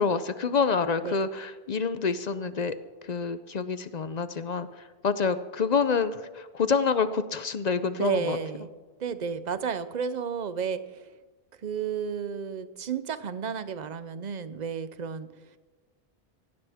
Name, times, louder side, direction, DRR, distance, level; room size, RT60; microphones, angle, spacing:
voice 1, 0.0-2.8 3.0-8.4, left 5 dB, 50° left, 13 dB, 0.6 m, -27 dB
voice 2, 7.9-8.7 9.0-11.1 11.6-15.3, right 6 dB, 50° right, 13 dB, 0.8 m, -32 dB
17.0 x 16.0 x 3.5 m, 1.3 s
omnidirectional pair, 1.0 m